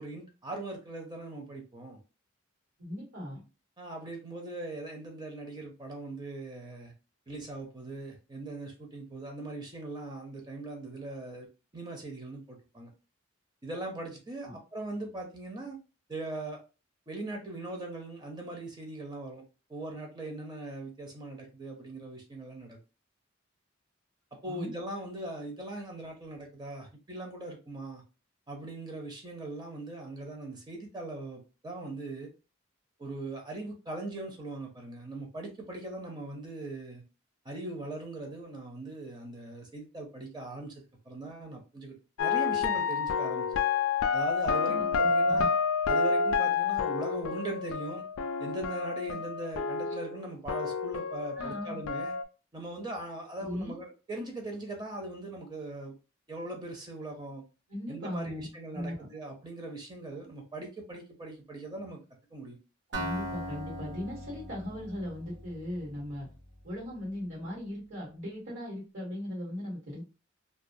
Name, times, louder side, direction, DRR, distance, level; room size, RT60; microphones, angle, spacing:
voice 1, 0.0-2.0 3.8-6.9 7.3-11.5 11.7-12.9 13.6-15.8 16.1-16.6 17.1-19.4 19.7-22.8 24.4-28.0 28.5-32.3 33.0-37.0 37.4-40.7 41.1-43.5 44.1-45.5 45.9-48.1 48.4-52.1 52.5-55.9 56.3-57.4 57.9-62.0 62.3-62.6, right 2 dB, 20° right, 2 dB, 0.5 m, -40 dB
voice 2, 2.8-3.4 14.4-14.5 24.4-24.7 44.6-45.5 51.4-51.8 53.4-53.8 57.7-59.1 62.9-66.3 66.6-70.0, left 1 dB, 80° right, -4 dB, 1.1 m, -38 dB
sound 1, 42.2-50.2 50.5-52.2, left 5 dB, 85° left, 0.3 m, -29 dB
Acoustic guitar, 62.9-66.8, right 1 dB, 60° right, 0.8 m, -40 dB
2.3 x 2.2 x 2.6 m, 0.32 s
head